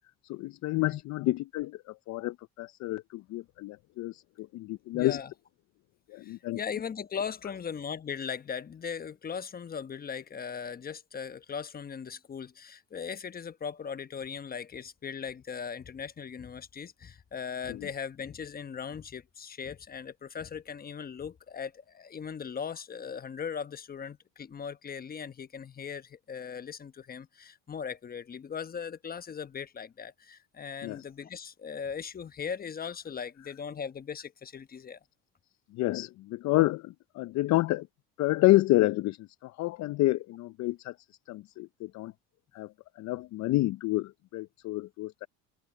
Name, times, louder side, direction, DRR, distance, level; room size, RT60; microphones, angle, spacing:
voice 1, 0.2-5.2 6.1-6.6 17.7-17.9 30.8-31.0 35.7-37.9 38.2-40.9 41.3-42.1 42.5-45.3, left 18 dB, 50° left, 0.6 m, -29 dB
voice 2, 4.9-5.3 6.2-35.0, left 7 dB, 25° left, 1.1 m, -39 dB
open air
supercardioid pair, 95°, 36 cm